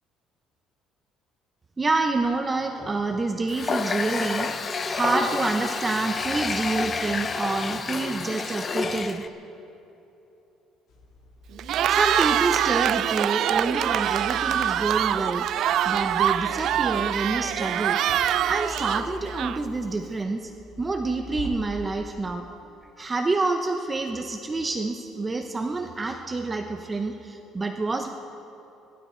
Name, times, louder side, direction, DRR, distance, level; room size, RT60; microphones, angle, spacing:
voice 1, 1.8-4.5 4.9-9.2 11.9-15.5 15.8-18.0 18.5-20.5 20.8-22.5 23.0-28.1, right 3 dB, 15° right, 5 dB, 0.7 m, -27 dB
Water tap faucet, 3.5-9.3, left 4 dB, 25° left, 0.6 m, -29 dB
sound 1, 10.9-21.5, left 3 dB, 70° left, 3.4 m, -44 dB
Cheering, 11.6-19.8, right 11 dB, 55° right, 0.4 m, -24 dB
26.0 x 12.0 x 4.4 m, 3.0 s
cardioid pair, 155°, 0 cm